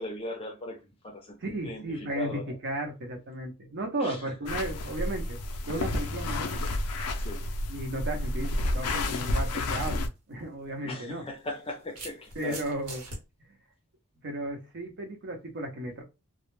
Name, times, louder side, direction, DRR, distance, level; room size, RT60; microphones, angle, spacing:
voice 1, 0.0-2.6 4.0-4.3 7.1-7.5 10.8-12.6, left 1 dB, 25° left, 0.5 m, -39 dB
voice 2, 1.4-5.4 5.6-6.6 7.7-10.0 10.3-11.2 12.4-13.0 14.2-16.0, right 1 dB, 50° right, 0.7 m, -34 dB
sound 1, 4.5-10.1, left 2 dB, 80° left, 0.4 m, -30 dB
sound 2, 10.1-10.2 11.3-13.2, right 2 dB, 90° right, 1.1 m, -42 dB
2.1 x 2.1 x 3.0 m
head